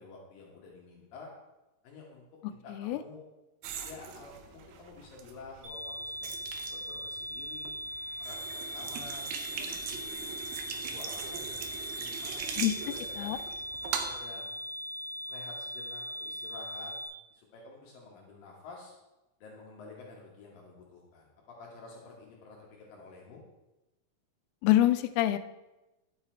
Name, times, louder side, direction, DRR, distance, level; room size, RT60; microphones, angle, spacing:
voice 1, 0.0-1.3 1.8-3.2 3.8-7.8 8.2-10.3 10.8-11.6 12.0-13.4 14.0-14.6 15.3-16.9 17.3-18.9 19.4-23.4, left 3 dB, 70° left, -2 dB, 2.9 m, -50 dB
voice 2, 2.7-3.0 12.6-12.7 13.2-13.4 24.6-25.4, left 14 dB, 85° left, 12 dB, 2.5 m, -25 dB
sound 1, 3.6-14.2, right 8 dB, 90° right, 2.8 m, -41 dB
sound 2, 5.6-17.1, left 1 dB, 40° right, 1.9 m, -39 dB
10.0 x 7.0 x 4.4 m, 1.0 s
omnidirectional pair, 4.4 m